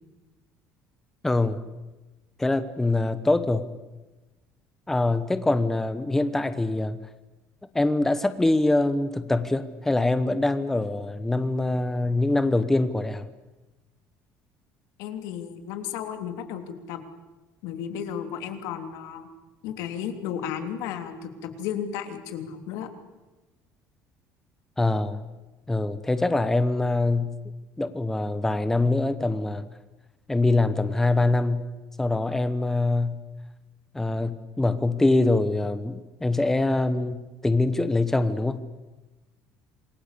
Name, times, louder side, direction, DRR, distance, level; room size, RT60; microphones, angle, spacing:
voice 1, 1.2-1.6 2.4-3.7 4.9-7.0 7.7-13.3 24.8-25.3 25.7-27.4 27.8-29.7 30.3-31.7 32.0-33.2 33.9-38.6, left 2 dB, 5° left, 11 dB, 1.0 m, -24 dB
voice 2, 15.0-16.6 16.9-17.0 17.6-19.3 19.6-22.9, left 8 dB, 85° left, 7 dB, 3.2 m, -33 dB
27.5 x 22.0 x 8.5 m, 1.1 s
cardioid pair, 175°, 6 cm